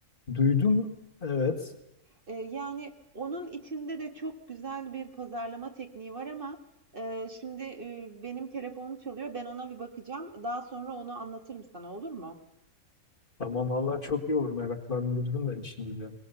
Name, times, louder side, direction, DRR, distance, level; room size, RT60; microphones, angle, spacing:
voice 1, 0.3-0.9 1.2-1.7 13.4-16.1, left 4 dB, 40° left, 5 dB, 2.0 m, -28 dB
voice 2, 2.3-6.6 6.9-12.4, right 3 dB, 40° right, 5 dB, 1.8 m, -38 dB
23.0 x 19.0 x 6.9 m, 0.90 s
omnidirectional pair, 1.4 m